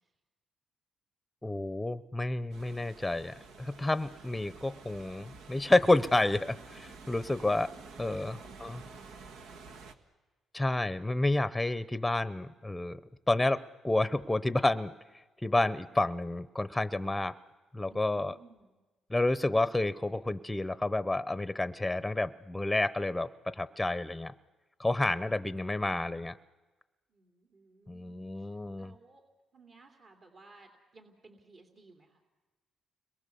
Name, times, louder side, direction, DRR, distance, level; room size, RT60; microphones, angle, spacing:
voice 1, 1.4-7.7 8.0-8.8 10.5-13.0 13.3-14.9 15.4-17.3 17.7-18.3 19.1-24.3 24.8-26.4 27.9-28.9, left 2 dB, 10° left, 15 dB, 0.8 m, -30 dB
sound 1, 2.5-9.9, right 4 dB, 85° right, 1.6 m, -50 dB
voice 2, 7.3-9.5 17.9-18.8 27.1-28.5 28.8-29.2 29.5-32.2, right 3 dB, 50° right, 3 dB, 3.0 m, -58 dB
30.0 x 22.0 x 7.0 m, 1.2 s
cardioid pair, 90°, 0 cm